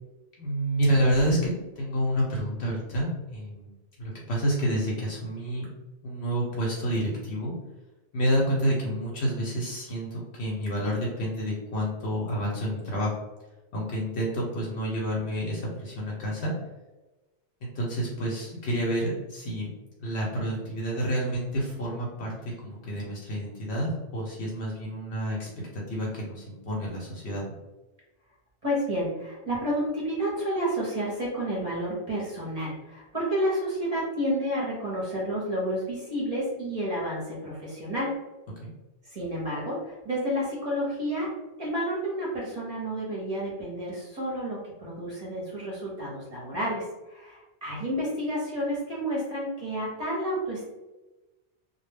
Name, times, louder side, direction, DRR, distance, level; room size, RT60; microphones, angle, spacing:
voice 1, 0.4-5.7 6.0-7.5 8.1-13.1 13.7-16.5 17.6-19.7 20.0-27.4 38.6-38.7, equal, 70° left, -4 dB, 0.9 m, -29 dB
voice 2, 28.6-38.1 39.1-41.3 41.6-50.7, equal, 40° right, -6 dB, 0.7 m, -30 dB
2.1 x 2.1 x 3.2 m, 1.1 s
omnidirectional pair, 1.2 m